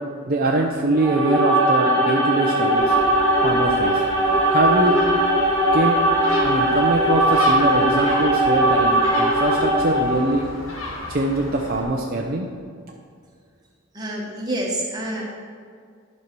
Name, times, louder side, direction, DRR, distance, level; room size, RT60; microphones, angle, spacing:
voice 1, 0.3-3.0 3.4-4.0 4.5-5.0 5.7-6.0 6.4-10.5 11.1-12.5, right 2 dB, 45° right, 0 dB, 0.6 m, -23 dB
sound 1, 0.9-10.4, right 1 dB, 10° left, 2.3 m, -19 dB
Gull seagull, 2.7-11.8, left 1 dB, 70° left, 1.6 m, -34 dB
voice 2, 13.9-15.2, right 1 dB, 20° right, -3 dB, 1.4 m, -27 dB
11.5 x 5.5 x 4.6 m, 2.1 s
head